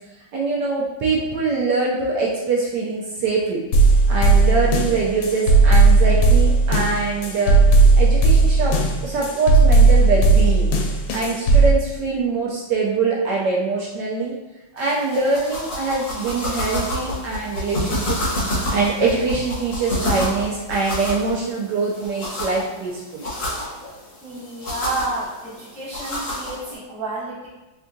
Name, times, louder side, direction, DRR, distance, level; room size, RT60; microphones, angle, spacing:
voice 1, 0.3-3.6 4.1-7.6 8.0-8.7 9.0-10.7 11.1-14.3 14.7-18.2 18.7-23.2, right 4 dB, 75° right, -3 dB, 1.0 m, -23 dB
sound 1, 3.7-11.7, right 3 dB, 85° left, 1.4 m, -15 dB
sound 2, 14.8-26.7, left 1 dB, 45° left, 1.5 m, -29 dB
voice 2, 24.2-27.5, right 2 dB, 10° left, -9 dB, 0.3 m, -30 dB
3.6 x 3.3 x 2.6 m, 1.1 s
omnidirectional pair, 2.2 m